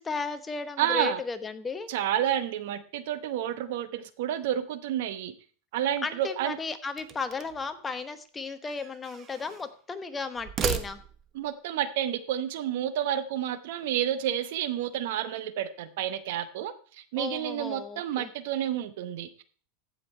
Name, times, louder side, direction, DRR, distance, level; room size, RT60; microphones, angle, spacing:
voice 1, 0.0-1.9 6.0-11.0 17.2-18.3, left 4 dB, 15° left, 9 dB, 0.9 m, -35 dB
voice 2, 0.8-1.2 1.9-5.3 5.7-6.6 11.3-19.4, right 11 dB, 70° right, 13 dB, 0.9 m, -30 dB
sound 1, 6.9-7.7 8.6-9.7 10.3-11.4, right 8 dB, 30° right, 0.9 m, -35 dB
14.5 x 5.2 x 4.4 m, 0.43 s
supercardioid pair, 140°, 0 cm